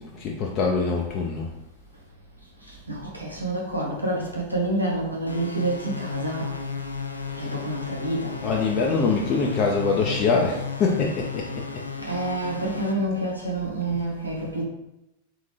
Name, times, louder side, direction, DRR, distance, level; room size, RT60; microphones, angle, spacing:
voice 1, 0.0-1.5 7.3-7.6 8.4-11.8 13.9-14.0, left 4 dB, 35° left, -1 dB, 0.5 m, -24 dB
voice 2, 2.7-6.5 7.4-8.4 12.0-14.6, right 2 dB, 90° right, -3 dB, 1.1 m, -28 dB
sound 1, 5.3-12.9, left 5 dB, 85° left, 0.4 m, -34 dB
3.7 x 3.6 x 3.2 m, 0.91 s
figure-of-eight pair, 90°, 0 cm